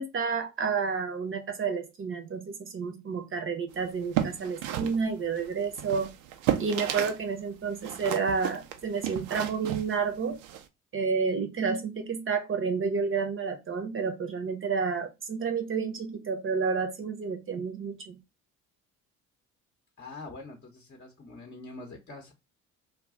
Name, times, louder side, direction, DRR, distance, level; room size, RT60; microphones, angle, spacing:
voice 1, 0.0-6.1 6.6-10.4 10.9-18.2, right 5 dB, 30° right, 0.8 m, -30 dB
sound 1, 3.9-7.2 7.5-10.6, right 11 dB, 70° right, 0.6 m, -33 dB
voice 2, 20.0-22.3, left 3 dB, 25° left, 0.8 m, -44 dB
2.3 x 2.3 x 3.6 m
hypercardioid pair, 55°, 42 cm